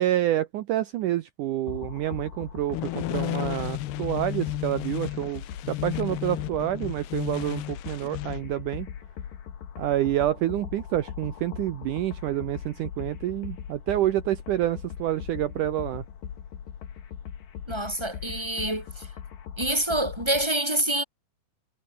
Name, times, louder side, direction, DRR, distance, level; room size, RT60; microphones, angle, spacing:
voice 1, 0.0-8.9 9.8-16.0, right 13 dB, 75° right, 1.9 m, -28 dB
sound 1, 1.7-20.5, left 8 dB, 60° left, 4.0 m, -40 dB
sound 2, 2.7-8.4, left 15 dB, 85° left, 3.2 m, -33 dB
voice 2, 17.7-19.1 19.6-21.0, right 1 dB, 5° right, 4.5 m, -27 dB
omnidirectional pair, 4.6 m